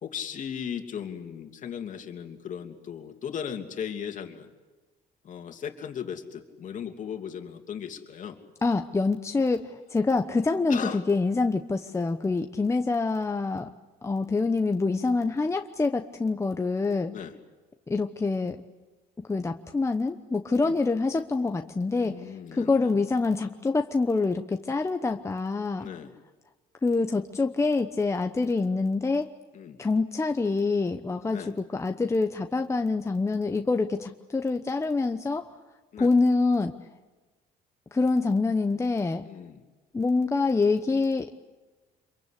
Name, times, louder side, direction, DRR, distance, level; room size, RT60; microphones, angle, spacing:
voice 1, 0.0-4.5 5.2-8.4 10.7-11.0 17.1-17.3 20.6-20.7 22.0-23.0 25.8-26.1 29.5-29.8 31.3-31.5 35.9-36.1 39.2-39.6, left 8 dB, 50° left, 5 dB, 2.9 m, -37 dB
voice 2, 8.6-13.7 14.0-17.1 17.9-18.6 19.3-22.2 22.5-25.9 26.8-29.3 29.8-31.4 31.7-35.5 36.0-36.7 37.9-39.3 39.9-41.3, left 3 dB, 15° left, 6 dB, 1.0 m, -26 dB
27.0 x 23.0 x 8.4 m, 1.3 s
cardioid pair, 110°, 17 cm